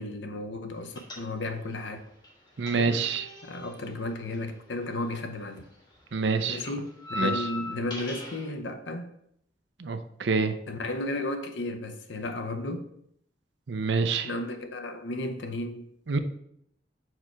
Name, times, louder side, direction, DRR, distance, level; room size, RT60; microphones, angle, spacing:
voice 1, 0.0-2.0 2.7-3.0 3.4-5.6 6.5-9.1 10.7-12.9 14.1-15.9, left 2 dB, 90° left, 0.7 m, -34 dB
sound 1, 1.0-1.7 2.0-5.4 5.6-8.5, left 3 dB, 25° left, 1.3 m, -38 dB
voice 2, 2.6-3.3 6.1-6.6 7.2-7.3 9.8-10.5 13.7-14.3 16.1-16.2, right 4 dB, 80° right, 0.6 m, -26 dB
4.7 x 4.4 x 4.8 m
head